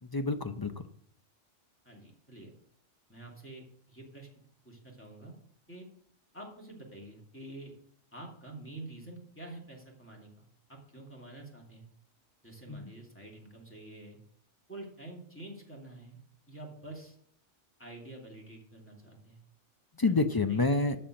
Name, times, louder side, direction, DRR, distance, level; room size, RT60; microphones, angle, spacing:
voice 1, 0.0-0.8 12.7-12.9 19.9-21.0, left 3 dB, 40° left, 8 dB, 0.3 m, -28 dB
voice 2, 1.8-2.5 3.1-4.3 4.6-5.3 5.7-5.9 6.3-7.7 8.1-11.9 12.4-14.2 14.7-16.2 16.5-17.2 17.8-19.4 20.0-20.1 20.5-20.6, right 2 dB, 10° left, -2 dB, 2.6 m, -47 dB
13.0 x 4.4 x 7.5 m, 0.66 s
omnidirectional pair, 1.2 m